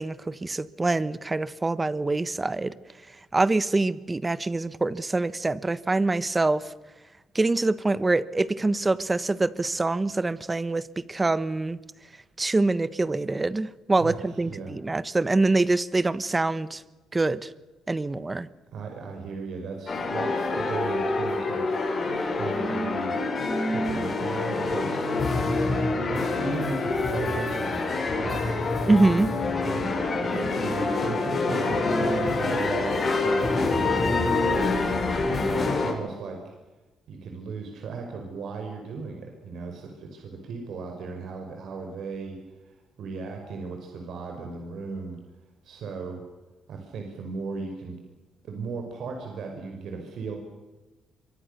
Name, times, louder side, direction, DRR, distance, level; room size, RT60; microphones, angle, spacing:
voice 1, 0.0-2.7 3.3-6.7 7.3-11.8 12.4-16.8 17.1-17.5 17.9-18.5 28.9-29.3, right 2 dB, 20° right, 16 dB, 1.3 m, -25 dB
voice 2, 14.0-14.8 18.7-21.7 22.4-23.3 23.7-25.7 26.1-28.7 29.3-36.5 37.1-42.4 42.6-45.2 45.6-46.2 46.7-48.0 48.4-50.4, right 4 dB, 70° right, 3 dB, 5.3 m, -36 dB
sound 1, 19.9-35.9, left 3 dB, 40° left, 7.3 m, -26 dB
26.5 x 24.0 x 6.9 m, 1.2 s
cardioid pair, 90°, 0 cm